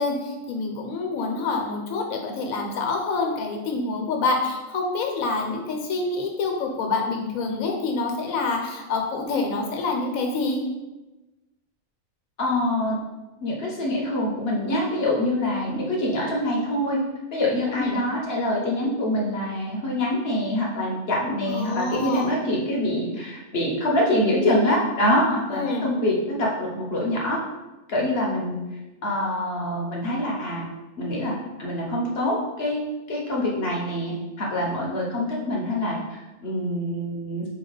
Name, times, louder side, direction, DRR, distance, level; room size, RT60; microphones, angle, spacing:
voice 1, 0.0-10.6 17.7-18.0 21.5-22.3 25.5-25.9, left 3 dB, 75° left, 2 dB, 1.2 m, -27 dB
voice 2, 12.4-13.0 13.4-17.0 17.3-27.4 27.9-28.6 29.0-30.7 31.0-32.8 33.1-37.4, left 1 dB, 50° left, -2 dB, 0.9 m, -25 dB
4.1 x 2.9 x 3.9 m, 1.1 s
omnidirectional pair, 1.5 m